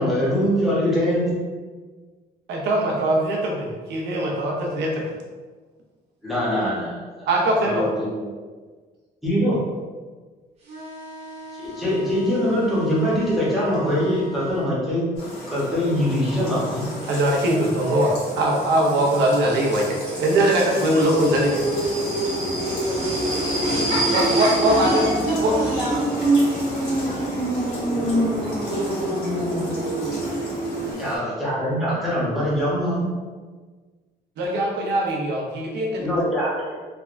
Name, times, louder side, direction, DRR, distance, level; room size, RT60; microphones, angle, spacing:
voice 1, 0.0-1.3 6.2-7.3 7.7-8.3 9.2-9.6 11.6-15.0 15.5-16.8 31.0-33.0 36.0-36.7, equal, ahead, -9 dB, 0.8 m, -23 dB
voice 2, 2.5-5.0 7.2-7.9 17.1-21.6 24.1-25.0 25.4-25.5 34.4-36.2, right 1 dB, 90° right, -1 dB, 0.6 m, -21 dB
sound 1, 10.6-14.7, right 1 dB, 40° right, 0.6 m, -39 dB
sound 2, 15.2-31.2, left 1 dB, 75° left, 1.2 m, -37 dB
sound 3, 16.9-30.9, right 1 dB, 70° right, 1.2 m, -25 dB
voice 3, 23.7-26.0, left 1 dB, 60° left, -9 dB, 1.4 m, -29 dB
3.3 x 2.1 x 2.4 m, 1.4 s
cardioid pair, 180°, 17 cm